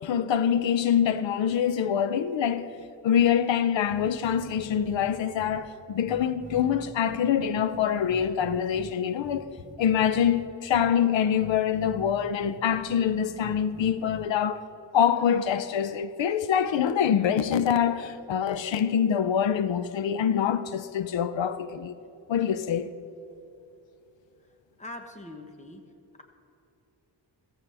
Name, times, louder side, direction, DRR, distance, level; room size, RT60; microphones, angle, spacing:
voice 1, 0.0-2.7 3.0-9.4 9.8-14.6 14.9-21.9 22.3-23.0, left 8 dB, 90° left, 0.6 m, -25 dB
sound 1, 3.9-5.1 5.4-5.6 6.1-8.9 9.2-10.4 10.7-10.9 11.4-14.3, right 1 dB, 10° right, 0.7 m, -45 dB
voice 2, 24.8-25.8, left 2 dB, 15° left, 1.1 m, -42 dB
15.5 x 14.5 x 3.4 m
wide cardioid pair, 140°, 43 cm